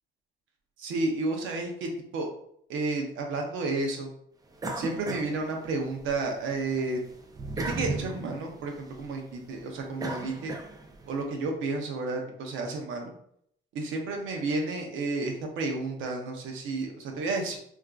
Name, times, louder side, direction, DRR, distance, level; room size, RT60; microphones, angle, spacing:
voice 1, 0.8-2.3 2.7-4.1 4.7-7.0 7.7-10.5 11.1-13.1 13.7-17.6, right 3 dB, 85° right, 2 dB, 0.7 m, -31 dB
sound 1, 4.6-6.1 6.5-11.1, right 2 dB, 20° right, 0.4 m, -36 dB
3.5 x 2.4 x 2.4 m, 0.69 s
cardioid pair, 90°, 20 cm